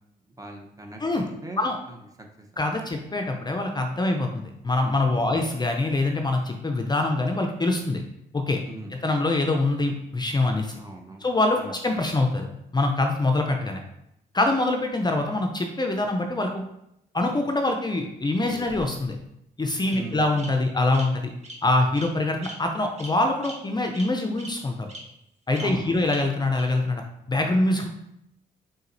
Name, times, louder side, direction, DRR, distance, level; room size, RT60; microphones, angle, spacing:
voice 1, 0.4-1.6 1.9-2.0 2.4-2.6 5.2-5.4 8.6-8.9 10.8-11.2 11.6-11.7 19.9-20.2 25.6-26.0, right 2 dB, 20° right, 2 dB, 0.8 m, -39 dB
voice 2, 2.6-8.0 8.3-8.6 8.9-10.7 11.2-13.8 14.3-16.7 17.1-19.2 19.6-21.3 21.6-24.9 25.5-27.0 27.3-27.9, left 2 dB, 25° left, 3 dB, 0.5 m, -24 dB
Bird vocalization bird call bird song, 18.4-19.2 19.9-20.0 20.4-20.5 20.9-21.0 21.4-21.6 21.9-22.1 22.4-22.5 23.0-23.1 23.4-23.5 23.9-24.0 24.4-24.5 24.9-25.0 25.5-25.6 26.1-26.2 26.5-26.6, right 1 dB, 40° right, 1.1 m, -40 dB
4.0 x 4.0 x 2.6 m, 0.81 s
supercardioid pair, 60°, 17 cm